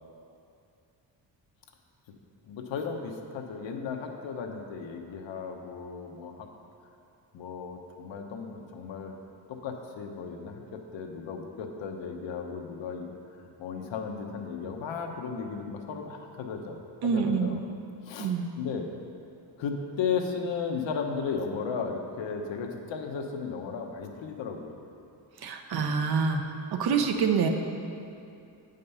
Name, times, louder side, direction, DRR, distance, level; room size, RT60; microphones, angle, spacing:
voice 1, 2.5-6.5 7.3-9.2 9.5-13.1 13.6-17.7 18.0-18.9 19.6-24.8, left 5 dB, 80° left, 3 dB, 1.0 m, -35 dB
voice 2, 17.0-17.5 18.2-18.5 25.4-26.4 26.7-27.5, right 5 dB, 60° right, 5 dB, 0.7 m, -26 dB
8.6 x 5.2 x 5.5 m, 2.6 s
wide cardioid pair, 155°, 44 cm